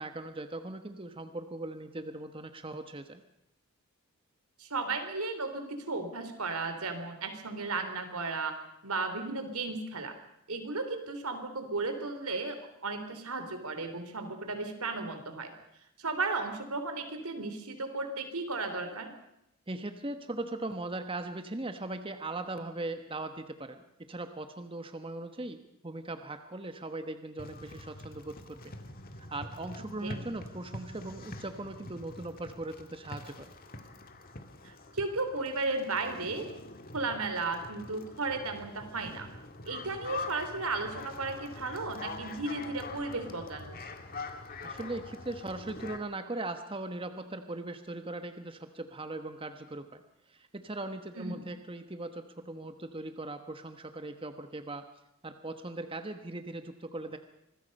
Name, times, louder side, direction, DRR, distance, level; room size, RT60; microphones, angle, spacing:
voice 1, 0.0-3.2 19.7-28.7 29.2-33.5 44.6-50.0 50.3-54.8 55.2-57.2, right 2 dB, 25° right, 7 dB, 1.2 m, -39 dB
voice 2, 4.6-8.5 8.8-10.1 10.5-15.5 16.0-19.1 30.0-30.2 34.6-36.5 36.9-39.3 39.7-43.8 51.2-51.5, right 3 dB, 80° right, 8 dB, 3.5 m, -35 dB
sound 1, 27.4-46.0, left 3 dB, 40° left, 1.9 m, -45 dB
25.5 x 21.0 x 5.4 m, 0.81 s
head